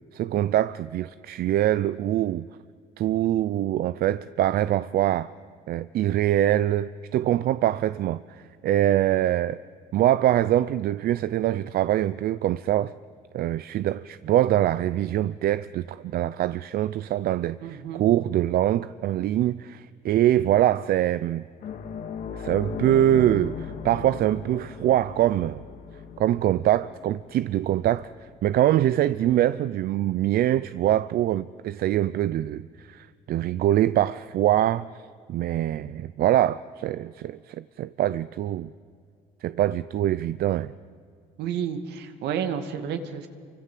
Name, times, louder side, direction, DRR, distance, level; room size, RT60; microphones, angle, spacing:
voice 1, 0.1-2.5 3.0-5.3 5.7-9.6 9.9-12.9 13.3-21.4 22.3-25.6 26.2-28.1 28.4-34.9 35.3-38.7 39.4-40.7, right 12 dB, 65° right, 0.6 m, -24 dB
voice 2, 17.6-18.1 41.4-43.3, right 8 dB, 80° right, 2.4 m, -31 dB
sound 1, 21.6-30.6 30.9-31.1 33.1-33.2, left 6 dB, 55° left, 2.0 m, -39 dB
28.5 x 24.5 x 7.6 m
cardioid pair, 110°, 17 cm